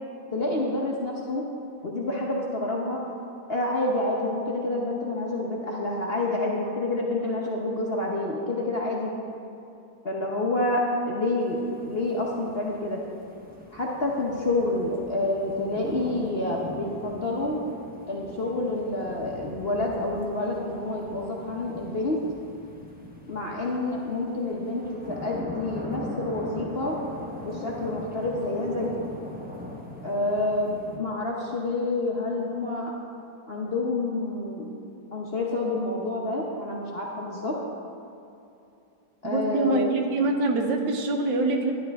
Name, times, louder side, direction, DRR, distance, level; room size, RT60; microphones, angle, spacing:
voice 1, 0.3-1.4 1.8-3.0 3.5-9.1 10.0-13.0 13.7-17.6 18.1-22.2 23.3-27.0 27.4-29.1 30.0-32.9 33.5-34.7 35.1-37.6 39.2-40.0, left 2 dB, 40° left, -2 dB, 0.9 m, -28 dB
sound 1, 11.4-31.0, left 1 dB, 10° right, 0.5 m, -41 dB
voice 2, 39.2-41.7, right 2 dB, 75° right, 3 dB, 1.6 m, -24 dB
11.5 x 11.0 x 3.5 m, 2.7 s
omnidirectional pair, 2.1 m